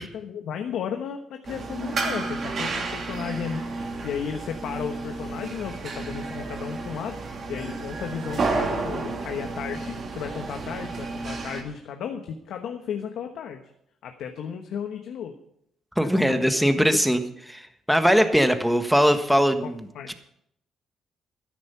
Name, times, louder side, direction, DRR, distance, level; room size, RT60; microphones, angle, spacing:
voice 1, 0.0-13.6 14.0-15.3 16.0-16.4 16.8-17.0 19.6-20.2, left 7 dB, 75° left, 5 dB, 1.1 m, -34 dB
sound 1, 1.5-11.6, right 3 dB, 50° right, 3.0 m, -31 dB
voice 2, 16.0-17.2 17.5-19.9, equal, ahead, 7 dB, 1.4 m, -21 dB
13.0 x 11.0 x 5.6 m, 0.73 s
cardioid pair, 90°, 0 cm